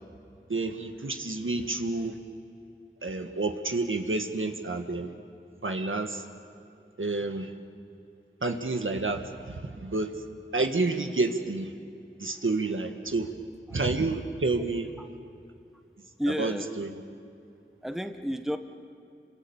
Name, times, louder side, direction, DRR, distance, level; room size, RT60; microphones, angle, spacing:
voice 1, 0.5-2.2 3.0-5.1 5.6-6.2 7.0-7.5 8.4-10.1 10.5-11.7 12.2-13.3 13.7-14.9 16.4-16.9, right 3 dB, 75° right, 5 dB, 1.7 m, -29 dB
voice 2, 16.2-16.7 17.8-18.6, equal, ahead, 7 dB, 1.5 m, -31 dB
28.5 x 25.0 x 7.2 m, 2.5 s
wide cardioid pair, 50°, 21 cm